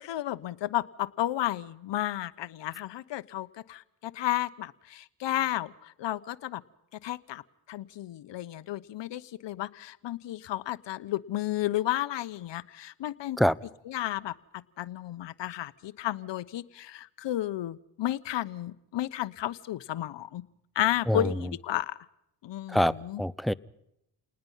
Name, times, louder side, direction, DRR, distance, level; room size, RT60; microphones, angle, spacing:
voice 1, 0.0-6.6 7.0-7.4 7.7-13.4 13.9-20.4 20.7-22.0 22.4-23.2, left 13 dB, 60° left, 14 dB, 1.1 m, -32 dB
voice 2, 21.1-21.5 22.7-23.5, equal, ahead, 17 dB, 0.8 m, -26 dB
29.0 x 19.5 x 5.7 m, 0.81 s
hypercardioid pair, 55°, 49 cm